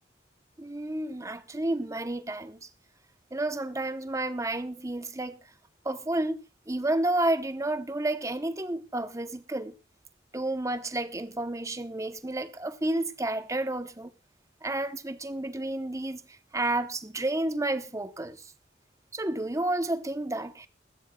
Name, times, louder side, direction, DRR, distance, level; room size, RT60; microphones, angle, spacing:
voice 1, 0.6-2.6 3.3-5.4 5.8-6.4 6.7-9.7 10.3-14.1 14.6-16.2 16.5-18.4 19.1-20.7, right 2 dB, 15° right, 0.8 m, -30 dB
20.5 x 15.0 x 2.3 m
head